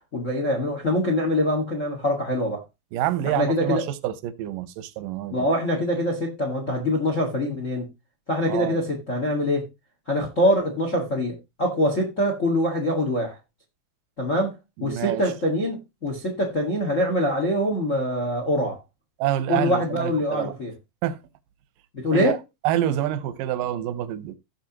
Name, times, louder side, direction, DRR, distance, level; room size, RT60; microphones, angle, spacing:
voice 1, 0.1-2.6 3.2-3.8 5.3-7.8 8.3-9.7 10.1-13.4 14.2-18.8 19.5-20.7 21.9-22.4, left 1 dB, 45° left, 1.0 m, -24 dB
voice 2, 2.9-5.5 8.5-8.8 14.8-15.2 19.2-20.5 21.0-21.2 22.1-22.4 22.6-24.4, right 12 dB, 75° right, 2.1 m, -27 dB
16.0 x 6.2 x 2.9 m
omnidirectional pair, 4.6 m